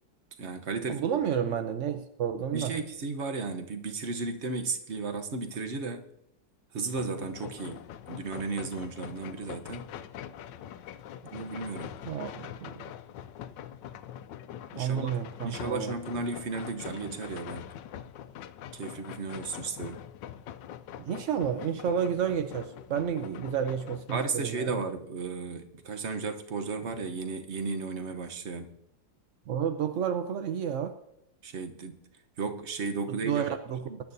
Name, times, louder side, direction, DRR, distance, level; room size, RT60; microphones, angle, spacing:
voice 1, 0.4-1.6 2.5-6.0 6.7-9.9 11.3-11.9 14.7-15.1 15.4-17.7 18.7-20.0 24.1-28.7 31.4-32.0 32.4-33.6 33.8-34.0, right 4 dB, 45° right, 6 dB, 1.1 m, -34 dB
voice 2, 0.9-2.8 12.1-12.7 14.8-16.0 21.0-24.8 29.5-30.9 33.2-33.8, right 8 dB, 65° right, 8 dB, 0.7 m, -30 dB
sound 1, 7.0-24.2, left 10 dB, 80° left, 1.3 m, -43 dB
21.0 x 10.5 x 2.7 m, 0.83 s
omnidirectional pair, 2.0 m